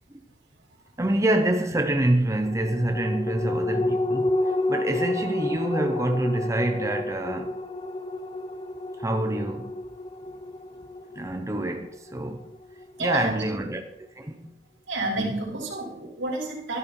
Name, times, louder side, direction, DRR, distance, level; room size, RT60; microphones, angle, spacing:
voice 1, 1.0-7.6 9.0-9.7 11.2-12.5 13.0-14.6 15.2-15.3, right 1 dB, 15° right, 0.6 m, -26 dB
sound 1, 2.4-13.3 13.6-13.7, left 2 dB, 25° left, 0.6 m, -30 dB
voice 2, 13.0-13.4 14.9-16.8, right 2 dB, 80° right, 4.5 m, -29 dB
13.0 x 11.0 x 4.4 m
head